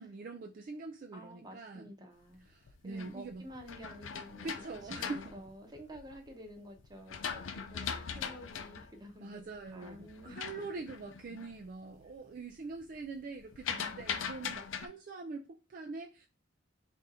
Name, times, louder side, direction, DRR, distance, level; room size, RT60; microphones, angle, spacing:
voice 1, 0.0-1.9 2.5-3.5 4.4-5.3 9.2-16.3, right 3 dB, 45° right, 0.4 m, -44 dB
voice 2, 1.1-2.5 2.8-4.5 4.8-9.4 9.7-10.5 12.0-12.1, equal, 20° right, 0.8 m, -50 dB
sound 1, 2.5-6.3 6.8-11.6 11.9-12.4 12.6-14.9, left 7 dB, 75° left, 0.5 m, -41 dB
3.4 x 2.6 x 4.1 m
head